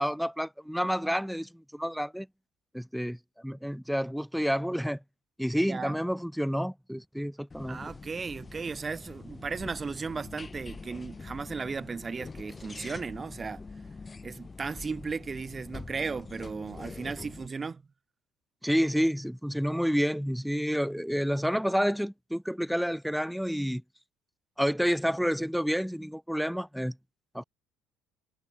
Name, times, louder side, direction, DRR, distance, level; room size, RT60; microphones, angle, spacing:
voice 1, 0.0-2.3 2.7-5.0 5.4-7.8 18.6-23.8 24.6-27.0 27.3-27.4, equal, ahead, 1.7 m, -29 dB
sound 1, 7.5-17.5, left 4 dB, 25° left, 5.9 m, -44 dB
voice 2, 7.7-13.7 14.2-17.8, right 4 dB, 25° right, 3.1 m, -36 dB
supercardioid pair, 90°, 0 cm